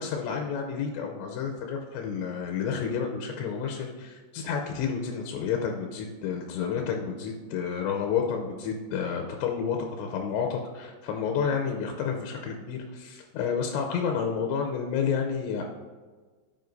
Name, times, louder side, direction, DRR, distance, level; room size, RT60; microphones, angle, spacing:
voice 1, 0.0-15.6, left 6 dB, 80° left, 2 dB, 2.7 m, -30 dB
15.0 x 5.1 x 2.6 m, 1.4 s
omnidirectional pair, 5.5 m